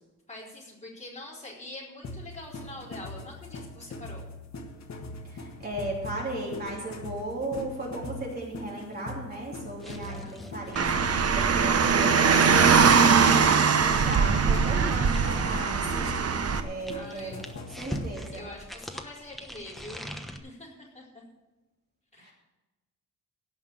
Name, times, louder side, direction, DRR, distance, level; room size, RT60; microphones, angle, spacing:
voice 1, 0.3-4.3 9.8-10.4 16.9-17.4 18.3-21.2 22.1-22.3, left 2 dB, 25° left, -5 dB, 4.4 m, -45 dB
sound 1, 2.0-18.2, left 2 dB, 65° left, 1.6 m, -42 dB
voice 2, 5.3-18.5 22.2-22.3, right 1 dB, 30° right, -3 dB, 3.2 m, -36 dB
sound 2, 9.8-15.6 16.4-20.4, equal, ahead, 1.0 m, -42 dB
Car, 10.8-16.6, right 6 dB, 55° right, 0.9 m, -21 dB
17.5 x 5.8 x 7.5 m, 1.1 s
wide cardioid pair, 165°, 29 cm